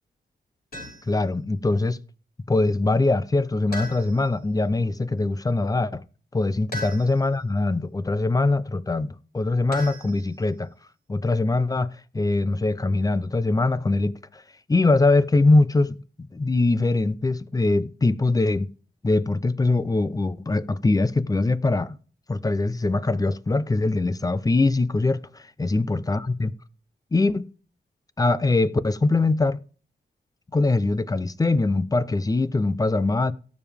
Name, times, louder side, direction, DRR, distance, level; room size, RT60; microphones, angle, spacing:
sound 1, 0.7-1.3 3.7-4.4 6.7-7.4 9.7-10.6, left 1 dB, 55° left, 6.6 m, -38 dB
voice 1, 1.0-2.0 2.5-6.0 6.3-10.7 11.1-14.4 14.7-18.7 19.0-22.0 22.3-26.5 27.1-27.5 28.2-29.6 30.5-33.3, left 2 dB, 20° left, 0.6 m, -22 dB
17.5 x 7.3 x 3.4 m
wide cardioid pair, 115°, 18 cm